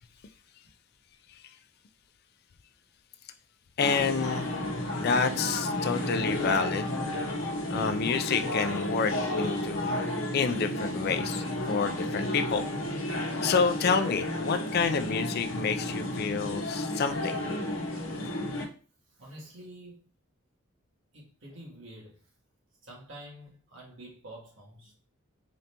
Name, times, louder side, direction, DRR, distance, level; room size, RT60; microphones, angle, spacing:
sound 1, 3.8-18.7, left 1 dB, 75° left, 0.9 m, -32 dB
voice 1, 3.8-4.5 4.9-6.9 7.7-10.0 10.3-12.7 13.4-17.4, left 5 dB, 50° left, 0.4 m, -28 dB
voice 2, 19.2-20.0 21.1-22.2 22.8-24.9, right 1 dB, 70° right, 1.7 m, -47 dB
3.9 x 2.9 x 3.3 m
head